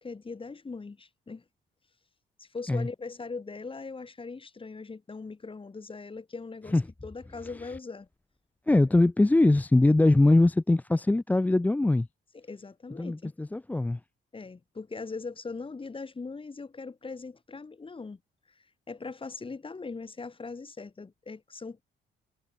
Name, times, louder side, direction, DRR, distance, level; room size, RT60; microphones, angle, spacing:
voice 1, 0.0-1.4 2.4-6.8 7.0-8.1 12.3-13.3 14.3-18.2 18.5-21.8, left 4 dB, 25° left, 2.9 m, -40 dB
voice 2, 8.7-12.1 13.0-14.0, left 2 dB, 10° left, 0.4 m, -22 dB
cardioid pair, 90°, 20 cm